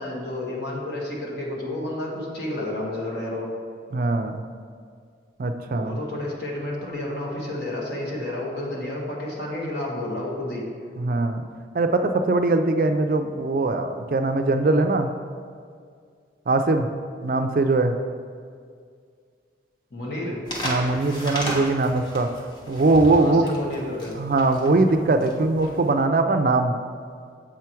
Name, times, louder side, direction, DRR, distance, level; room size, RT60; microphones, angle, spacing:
voice 1, 0.0-3.5 5.7-10.6 19.9-20.4 23.2-24.1, left 1 dB, 60° left, -3 dB, 1.5 m, -31 dB
voice 2, 3.9-4.4 5.4-6.0 11.0-11.4 11.7-15.1 16.5-16.9 17.2-17.9 20.6-22.3 22.7-23.5 24.2-26.7, right 2 dB, 50° right, 7 dB, 0.4 m, -21 dB
sound 1, 20.5-25.9, equal, 25° left, 1.0 m, -34 dB
7.5 x 4.7 x 4.5 m, 2.1 s
head